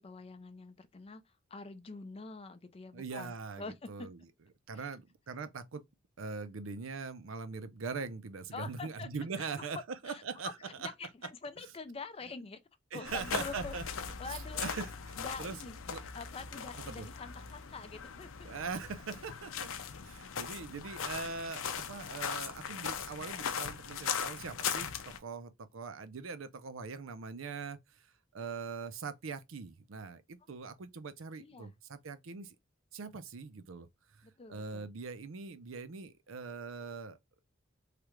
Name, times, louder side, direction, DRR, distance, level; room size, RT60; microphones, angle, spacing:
voice 1, 0.0-4.1 4.7-4.9 8.5-9.1 9.4-9.7 10.1-10.2 10.6-12.6 12.9-13.7 14.2-14.9 15.2-18.5 31.4-31.7 34.2-34.9, left 4 dB, 30° left, 0.4 m, -46 dB
voice 2, 2.9-4.3 4.7-5.8 6.2-10.5 10.8-10.9 12.9-13.8 14.3-15.6 15.9-16.0 16.9-17.1 18.4-19.7 20.0-21.6 21.9-32.6 32.9-33.9 34.1-37.2, right 4 dB, 75° right, 0.6 m, -42 dB
sound 1, 13.0-25.2, left 7 dB, 80° left, 0.5 m, -39 dB
3.3 x 2.4 x 3.0 m
head